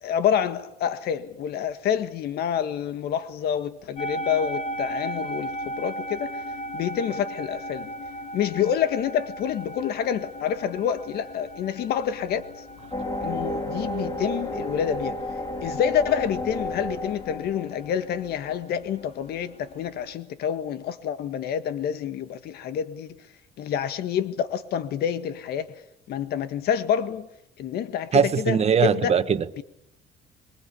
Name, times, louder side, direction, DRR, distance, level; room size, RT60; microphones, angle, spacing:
voice 1, 0.0-6.3 6.7-7.9 8.3-12.4 13.2-15.2 15.6-23.1 23.6-25.7 26.1-27.3 27.6-28.6 28.8-29.1 29.6-29.7, left 9 dB, 70° left, 1.8 m, -27 dB
sound 1, 4.0-20.1, right 1 dB, 40° left, 4.9 m, -37 dB
sound 2, 12.9-18.2, left 1 dB, 20° left, 3.4 m, -32 dB
voice 2, 28.1-29.6, right 7 dB, 40° right, 1.7 m, -21 dB
27.0 x 23.0 x 8.4 m
cardioid pair, 110°, 17 cm